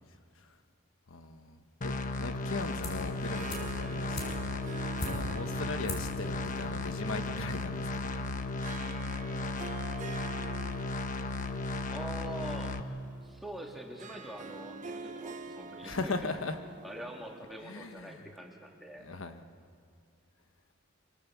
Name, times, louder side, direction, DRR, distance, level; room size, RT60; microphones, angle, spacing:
voice 1, 1.1-4.4 5.0-8.4 8.7-8.9 15.8-16.6 17.6-18.3 19.0-19.4, left 3 dB, 75° left, 8 dB, 1.2 m, -39 dB
sound 1, 1.8-12.8, left 2 dB, 40° left, 1.1 m, -35 dB
sound 2, 2.8-3.1 3.5-5.5 5.8-6.2 6.5-6.6, left 2 dB, 55° left, 5.5 m, -40 dB
Harp, 2.9-18.2, right 4 dB, 35° right, 0.8 m, -47 dB
voice 2, 11.9-12.8 13.2-16.1 16.8-19.1, right 1 dB, ahead, -1 dB, 2.9 m, -44 dB
24.5 x 24.5 x 7.3 m, 2.3 s
head